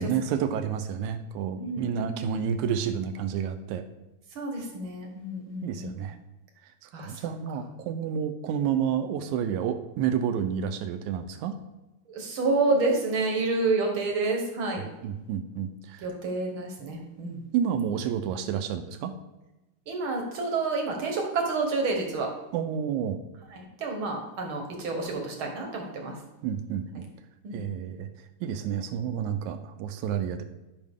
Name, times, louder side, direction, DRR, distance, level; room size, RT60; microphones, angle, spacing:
voice 1, 0.0-3.9 5.6-6.2 6.8-11.6 15.0-16.1 17.5-19.2 22.5-23.2 26.4-27.1 27.5-28.1 28.4-30.4, right 8 dB, 80° right, 9 dB, 1.8 m, -30 dB
voice 2, 1.6-2.4 4.3-6.0 6.9-7.3 7.5-7.6 12.1-14.8 16.0-17.4 19.9-22.3 23.5-26.2 27.4-27.6, right 3 dB, 60° right, 2 dB, 1.5 m, -29 dB
12.0 x 5.8 x 3.6 m, 1.0 s
omnidirectional pair, 3.8 m